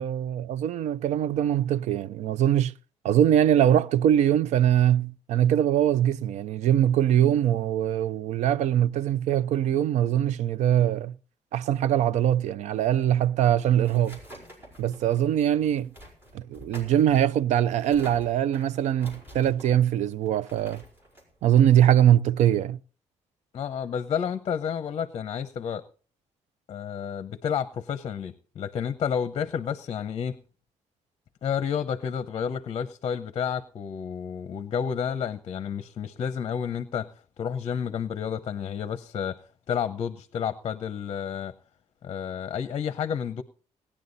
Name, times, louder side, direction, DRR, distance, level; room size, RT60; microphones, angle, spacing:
voice 1, 0.0-2.7 3.0-11.2 11.5-14.2 14.8-15.9 16.3-20.8 21.4-22.8, right 10 dB, 75° right, 0.5 m, -22 dB
sound 1, 13.2-22.5, equal, 20° right, 4.9 m, -49 dB
voice 2, 23.5-25.8 26.7-30.4 31.4-37.1 37.4-41.5 42.0-43.4, left 7 dB, 40° left, 0.7 m, -30 dB
18.5 x 10.0 x 4.0 m
cardioid pair, 175°, 12 cm